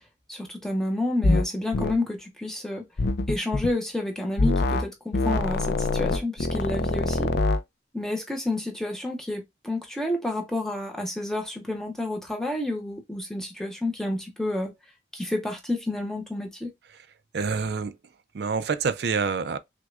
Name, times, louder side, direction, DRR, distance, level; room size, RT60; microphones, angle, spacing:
voice 1, 0.3-2.9 3.3-7.3 7.9-14.7 15.1-16.7, left 1 dB, 5° left, 0.6 m, -30 dB
sound 1, 1.2-1.5 1.7-1.9 3.0-3.7 4.4-4.8 5.1-7.6, left 2 dB, 65° left, 0.4 m, -24 dB
voice 2, 17.3-18.0 18.3-19.6, right 5 dB, 65° right, 0.4 m, -27 dB
6.1 x 2.2 x 2.3 m
head